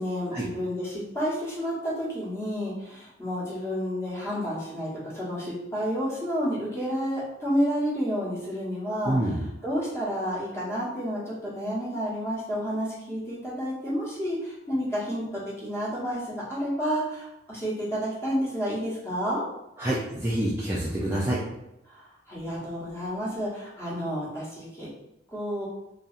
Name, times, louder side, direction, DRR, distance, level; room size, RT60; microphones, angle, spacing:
voice 1, 0.0-9.2 9.6-19.4 22.3-24.9 25.3-25.7, equal, 15° left, -8 dB, 1.0 m, -30 dB
voice 2, 9.0-9.4 19.8-21.4, right 1 dB, 15° right, -7 dB, 0.4 m, -27 dB
2.7 x 2.7 x 2.4 m, 0.92 s
head